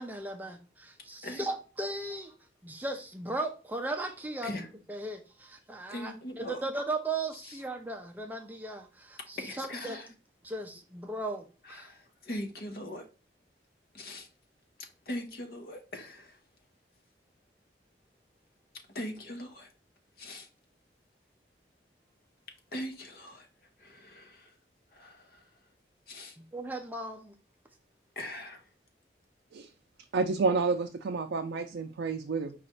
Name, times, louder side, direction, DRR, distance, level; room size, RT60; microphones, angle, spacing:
voice 1, 0.0-2.3 2.6-4.5 4.9-10.0 10.4-11.9 26.4-27.3, right 2 dB, 10° right, 0.4 m, -37 dB
voice 2, 5.9-6.6 7.3-7.6 9.4-10.1 11.6-13.0 13.9-14.3 14.8-16.4 18.7-19.7 20.2-20.5 22.7-23.5 23.8-24.5 24.9-25.5 26.1-26.4 28.2-28.7, left 1 dB, 55° left, 0.8 m, -41 dB
voice 3, 30.1-32.5, right 4 dB, 85° right, 0.4 m, -29 dB
5.0 x 2.4 x 4.3 m
head